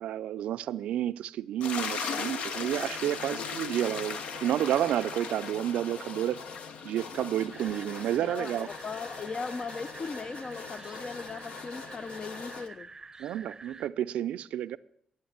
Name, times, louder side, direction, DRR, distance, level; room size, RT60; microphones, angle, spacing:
voice 1, 0.0-6.4 6.8-8.7 13.2-14.8, right 11 dB, 80° right, 0.4 m, -30 dB
sound 1, 1.6-12.7, left 5 dB, 70° left, 0.8 m, -39 dB
sound 2, 7.5-13.9, right 4 dB, 30° right, 0.6 m, -48 dB
voice 2, 8.2-12.9, left 4 dB, 45° left, 0.5 m, -38 dB
11.5 x 7.0 x 7.2 m
supercardioid pair, 55°, 2 cm